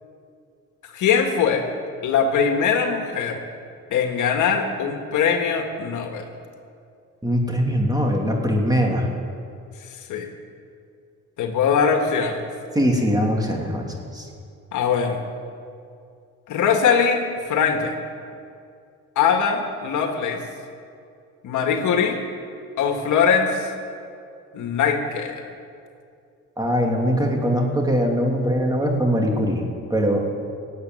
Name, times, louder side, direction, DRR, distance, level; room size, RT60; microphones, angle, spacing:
voice 1, 0.9-1.7 2.0-3.4 3.9-6.2 10.1-10.3 11.4-12.4 14.7-15.2 16.5-17.9 19.2-20.4 21.4-22.2 22.8-23.7 24.5-25.4, left 6 dB, 80° left, 4 dB, 1.8 m, -21 dB
voice 2, 7.2-9.1 12.7-14.2 26.6-30.2, equal, 15° right, 0 dB, 2.9 m, -21 dB
17.5 x 8.3 x 9.4 m, 2.4 s
cardioid pair, 90°, 30 cm